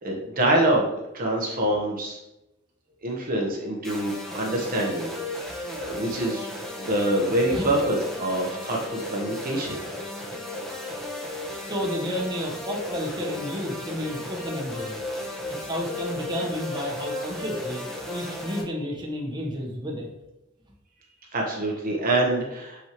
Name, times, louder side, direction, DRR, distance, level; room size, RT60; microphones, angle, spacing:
voice 1, 0.0-2.2 3.0-6.5 6.8-9.8 21.3-22.9, right 1 dB, 45° right, -1 dB, 1.0 m, -26 dB
sound 1, 3.8-18.6, left 1 dB, ahead, 1.0 m, -34 dB
voice 2, 7.3-7.7 11.5-14.9 15.5-20.1, equal, 20° right, -1 dB, 1.1 m, -31 dB
6.4 x 5.8 x 3.0 m, 0.93 s
head